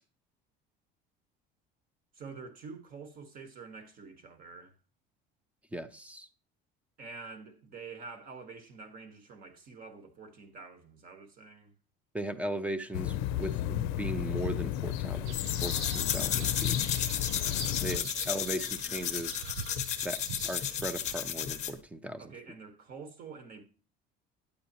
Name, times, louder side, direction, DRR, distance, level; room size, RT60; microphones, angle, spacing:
voice 1, 2.1-4.8 7.0-11.7 17.9-18.3 22.2-23.6, right 4 dB, 45° right, 1.3 m, -47 dB
voice 2, 5.7-6.3 12.1-16.8 17.8-19.4 20.0-22.3, right 1 dB, 5° right, 0.4 m, -38 dB
sound 1, 12.9-18.0, left 12 dB, 85° left, 0.4 m, -33 dB
sound 2, 15.2-21.2, right 8 dB, 75° right, 0.6 m, -45 dB
sound 3, 15.3-21.8, left 9 dB, 35° left, 0.6 m, -34 dB
8.7 x 8.2 x 2.8 m
cardioid pair, 145°, 21 cm